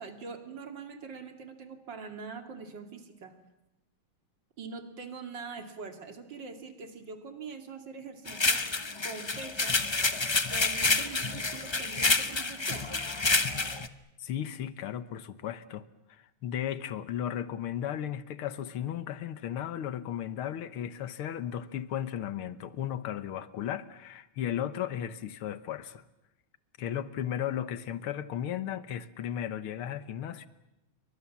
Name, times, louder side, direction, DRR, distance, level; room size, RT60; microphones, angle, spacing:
voice 1, 0.0-3.3 4.6-8.6 9.0-9.8 10.5-13.1, right 4 dB, 60° right, 3.2 m, -43 dB
sound 1, 8.3-13.9, left 3 dB, 45° left, 0.3 m, -28 dB
voice 2, 14.2-26.0 26.8-30.5, left 10 dB, 85° left, 2.0 m, -35 dB
29.5 x 24.0 x 7.3 m
omnidirectional pair, 2.3 m